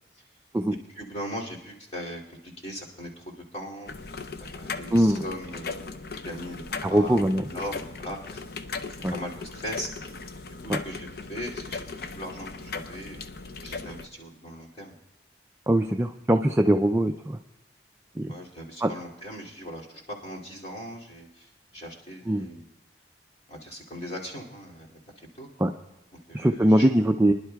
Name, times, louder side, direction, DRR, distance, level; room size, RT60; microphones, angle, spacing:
voice 1, 0.9-3.9 4.4-8.4 8.9-9.9 10.5-13.2 13.6-14.9 18.3-22.7 23.5-25.5 26.3-26.9, equal, 35° left, -3 dB, 2.5 m, -39 dB
sound 1, 3.9-14.1, left 4 dB, 55° left, 0.6 m, -38 dB
voice 2, 4.9-5.2 6.8-7.4 9.0-9.1 10.7-10.8 15.7-17.4 18.2-18.3 18.8-18.9 22.3-22.5 25.6-25.7 26.3-27.3, right 1 dB, 10° right, 4 dB, 0.3 m, -22 dB
25.0 x 11.0 x 2.3 m, 0.95 s
head